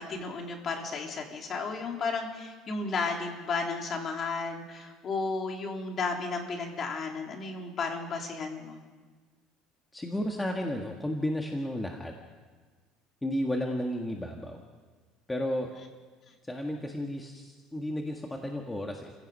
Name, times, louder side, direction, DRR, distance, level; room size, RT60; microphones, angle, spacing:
voice 1, 0.0-8.8, left 4 dB, 35° left, 2 dB, 3.5 m, -33 dB
voice 2, 9.9-12.1 13.2-14.6 15.3-15.7 16.5-19.1, left 1 dB, 10° left, 1 dB, 1.7 m, -33 dB
29.0 x 16.5 x 5.5 m, 1.4 s
cardioid pair, 135°, 0 cm